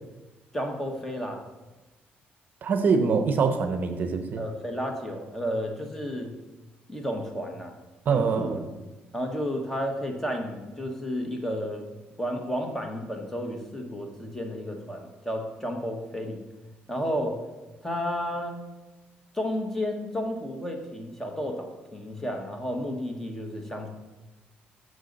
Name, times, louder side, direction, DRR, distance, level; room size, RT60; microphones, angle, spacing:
voice 1, 0.5-1.4 4.4-6.3 6.9-7.7 8.1-8.6 9.1-11.9 12.2-16.4 16.9-17.4 17.8-18.6 19.3-23.9, equal, 10° left, 3 dB, 1.1 m, -32 dB
voice 2, 2.6-4.4 8.1-8.5, right 5 dB, 50° right, 7 dB, 0.7 m, -24 dB
6.3 x 6.3 x 4.0 m, 1.1 s
cardioid pair, 105°, 4 cm